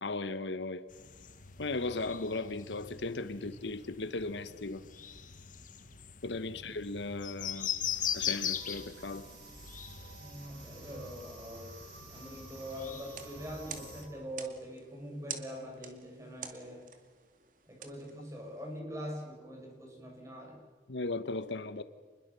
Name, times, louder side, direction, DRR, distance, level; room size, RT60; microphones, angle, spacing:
voice 1, 0.0-0.9 1.6-4.8 6.2-7.7 8.1-9.3 20.9-21.8, left 3 dB, 80° left, 13 dB, 1.0 m, -36 dB
sound 1, 0.9-14.1, left 9 dB, 50° left, 1.5 m, -41 dB
sound 2, 7.7-14.0, right 2 dB, 70° right, 5.4 m, -51 dB
voice 2, 10.2-16.8 17.7-20.6, equal, 15° right, 0 dB, 6.1 m, -43 dB
sound 3, 13.1-18.8, right 7 dB, 50° right, 2.3 m, -48 dB
27.5 x 21.0 x 6.9 m, 1.5 s
head